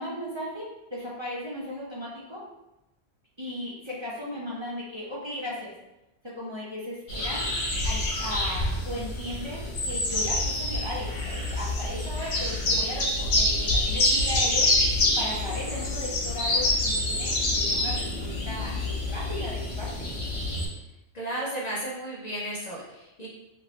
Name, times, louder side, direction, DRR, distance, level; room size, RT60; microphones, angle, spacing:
voice 1, 0.0-2.4 3.4-5.7 6.2-7.5 7.8-14.7 15.2-20.1, left 1 dB, 30° right, -7 dB, 0.7 m, -36 dB
sound 1, 7.1-20.7, left 1 dB, 85° left, 1.2 m, -27 dB
voice 2, 21.1-23.3, right 1 dB, 45° left, -5 dB, 0.6 m, -34 dB
3.3 x 2.5 x 2.9 m, 0.92 s
omnidirectional pair, 1.1 m